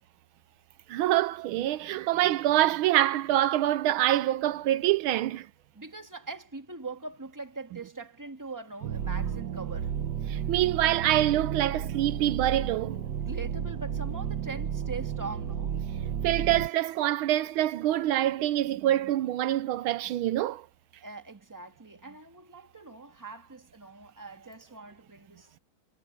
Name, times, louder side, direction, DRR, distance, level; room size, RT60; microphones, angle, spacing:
voice 1, 0.9-5.5 10.3-13.0 16.2-20.6, right 13 dB, 80° right, 1.4 m, -25 dB
voice 2, 5.7-10.0 13.2-15.8 21.0-25.6, right 3 dB, 10° right, 1.8 m, -42 dB
sound 1, 8.8-16.7, right 8 dB, 60° right, 1.5 m, -32 dB
omnidirectional pair, 2.3 m